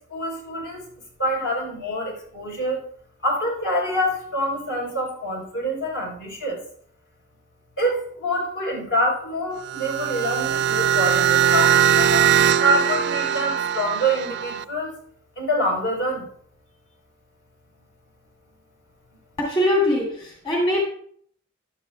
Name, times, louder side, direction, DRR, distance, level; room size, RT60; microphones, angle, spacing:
voice 1, 0.1-0.9 1.2-2.8 3.2-6.6 7.8-12.3 12.5-14.9 15.4-16.3, equal, 60° left, -2 dB, 4.1 m, -26 dB
sound 1, 9.6-14.6, right 9 dB, 55° right, 0.4 m, -20 dB
voice 2, 19.4-20.8, left 1 dB, 25° left, -3 dB, 2.6 m, -22 dB
15.0 x 11.0 x 2.3 m, 0.62 s
head